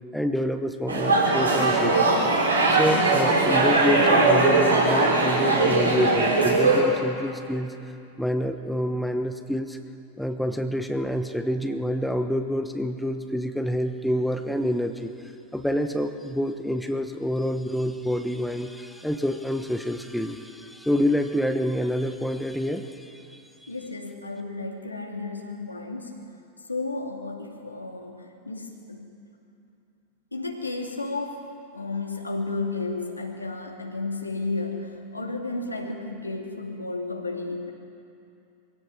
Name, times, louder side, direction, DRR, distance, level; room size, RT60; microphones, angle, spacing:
voice 1, 0.1-2.0 2.6-7.7 8.2-9.8 10.2-15.1 15.5-23.7, equal, ahead, 7 dB, 1.1 m, -27 dB
sound 1, 0.9-6.8, right 3 dB, 80° right, 4.2 m, -20 dB
voice 2, 23.7-26.2 26.7-29.2 30.3-31.4 31.7-37.7, left 3 dB, 85° left, 2 dB, 2.5 m, -32 dB
23.0 x 16.5 x 7.6 m, 2.6 s
figure-of-eight pair, 90°, 0 cm